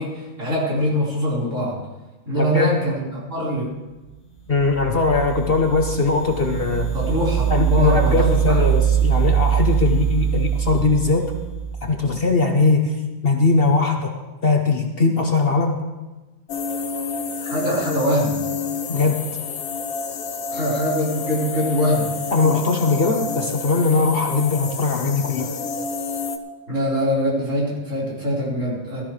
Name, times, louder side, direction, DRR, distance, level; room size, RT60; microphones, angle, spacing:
voice 1, 0.0-1.8 2.2-3.7 6.9-8.6 17.4-18.4 20.5-22.1 26.7-29.0, equal, 60° right, -7 dB, 5.1 m, -23 dB
voice 2, 2.3-2.8 4.5-6.9 7.5-11.3 11.8-12.9 13.2-14.1 14.4-15.8 18.9-19.2 22.3-25.5, left 3 dB, 45° left, 3 dB, 1.1 m, -20 dB
sound 1, 4.5-12.1, right 9 dB, 20° left, 2.5 m, -22 dB
sound 2, 16.5-26.4, left 4 dB, 90° left, 1.3 m, -29 dB
17.0 x 13.0 x 3.3 m, 1.1 s
omnidirectional pair, 1.5 m